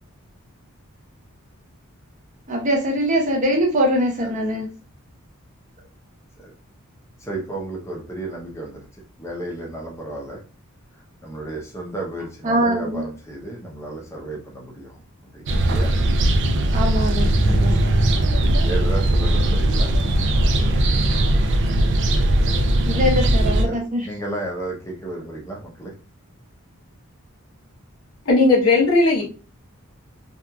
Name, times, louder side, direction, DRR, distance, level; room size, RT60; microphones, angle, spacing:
voice 1, 2.5-4.7 12.4-13.0 16.7-17.9 22.9-24.0, equal, 35° right, -1 dB, 0.7 m, -22 dB
voice 2, 7.2-8.8 9.2-10.4 11.2-15.0 15.3-15.9 17.5-17.7 18.6-19.9 23.6-25.9, right 2 dB, 15° left, -2 dB, 0.6 m, -33 dB
sound 1, 15.5-23.6, right 1 dB, 55° right, 0.4 m, -19 dB
voice 3, 28.3-29.2, left 3 dB, 75° left, -2 dB, 0.9 m, -16 dB
2.8 x 2.4 x 2.2 m, 0.35 s
head